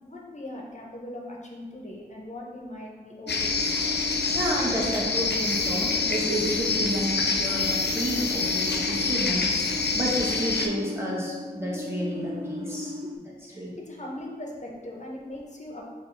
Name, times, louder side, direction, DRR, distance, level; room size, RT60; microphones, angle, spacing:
voice 1, 0.0-3.8 13.0-13.1 13.5-15.8, left 1 dB, 45° left, -2 dB, 0.8 m, -40 dB
sound 1, 3.3-10.7, left 4 dB, 75° left, 0.5 m, -27 dB
sound 2, 3.3-13.2, left 2 dB, 35° right, 0.6 m, -36 dB
voice 2, 4.3-9.5 9.9-12.9 13.5-13.7, equal, 15° right, -5 dB, 1.2 m, -30 dB
6.8 x 2.4 x 3.2 m, 1.4 s
wide cardioid pair, 65°, 18 cm